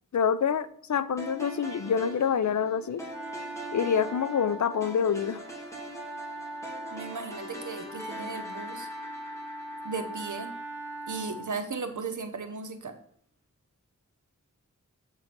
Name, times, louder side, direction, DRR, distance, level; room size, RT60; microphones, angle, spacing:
voice 1, 0.1-3.0 3.7-5.4, left 7 dB, 65° left, 14 dB, 0.5 m, -26 dB
sound 1, 1.2-11.4, right 1 dB, 10° left, 2.1 m, -43 dB
Wind instrument woodwind instrument, 2.5-11.6, right 1 dB, 5° right, 2.0 m, -41 dB
voice 2, 6.9-8.9 9.8-10.6 11.1-13.0, right 4 dB, 70° right, 7 dB, 0.9 m, -36 dB
7.6 x 3.8 x 5.9 m, 0.64 s
wide cardioid pair, 70°, 31 cm